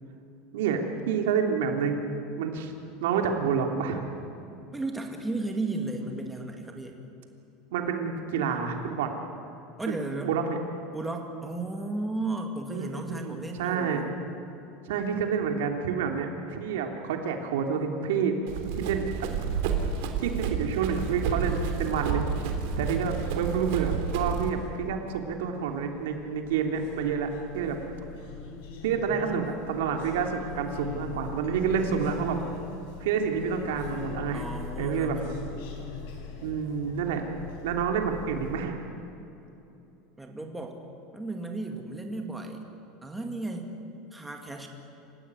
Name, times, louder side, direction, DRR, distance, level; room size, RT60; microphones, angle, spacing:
voice 1, 0.5-2.0 2.4-2.7 3.0-4.1 7.7-9.1 9.9-10.6 12.7-14.0 14.9-18.3 18.8-19.1 20.2-22.3 22.8-27.8 28.8-32.4 33.0-34.5 34.8-35.2 36.4-37.2 37.6-38.8, right 6 dB, 90° right, 3 dB, 3.1 m, -28 dB
voice 2, 4.7-7.0 9.8-10.3 10.9-14.2 29.1-29.5 34.3-35.3 40.2-40.8 41.1-42.6 43.0-43.7 44.1-44.7, right 2 dB, 5° right, 3 dB, 2.2 m, -34 dB
Run, 18.5-24.5, right 6 dB, 65° right, 3.3 m, -30 dB
sound 1, 24.3-38.6, left 6 dB, 70° left, 4.5 m, -42 dB
27.0 x 15.5 x 9.7 m, 2.9 s
supercardioid pair, 155°, 0 cm